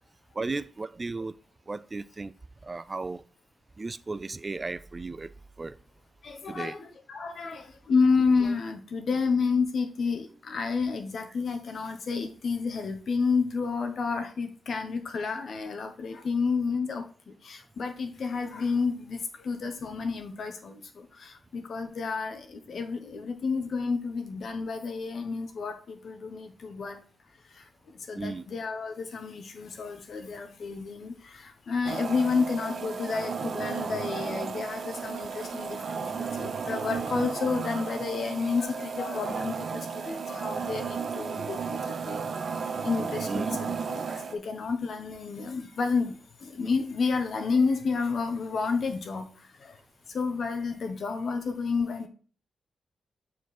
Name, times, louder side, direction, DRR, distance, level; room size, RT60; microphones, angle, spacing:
voice 1, 0.3-1.4 1.7-2.3 2.6-3.2 3.8-5.3 5.6-5.8 6.5-6.8 28.2-28.5 43.3-43.6, right 3 dB, 25° right, 0.4 m, -35 dB
voice 2, 6.2-27.0 27.5-27.6 28.1-42.3 42.6-49.3 49.6-49.8 50.1-52.1, left 4 dB, 60° left, 1.2 m, -30 dB
sound 1, 31.8-44.3, right 5 dB, 65° right, 0.8 m, -34 dB
7.1 x 4.5 x 4.3 m
wide cardioid pair, 110°, 0 cm